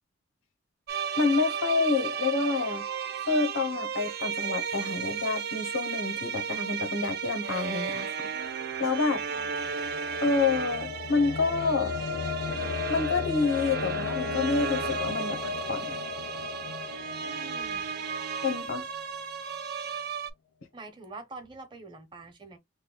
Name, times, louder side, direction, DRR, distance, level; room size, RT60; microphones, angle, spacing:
sound 1, 0.9-20.3, right 6 dB, 50° right, 0.5 m, -34 dB
voice 1, 1.2-2.8 3.3-8.3 8.8-9.2 10.2-11.9 12.9-15.9 18.4-18.9, left 4 dB, 90° left, 0.8 m, -28 dB
sound 2, 9.0-19.2, left 6 dB, 65° left, 0.4 m, -36 dB
voice 2, 17.2-17.8 20.7-22.6, right 3 dB, 25° right, 0.9 m, -45 dB
3.2 x 2.2 x 3.8 m
head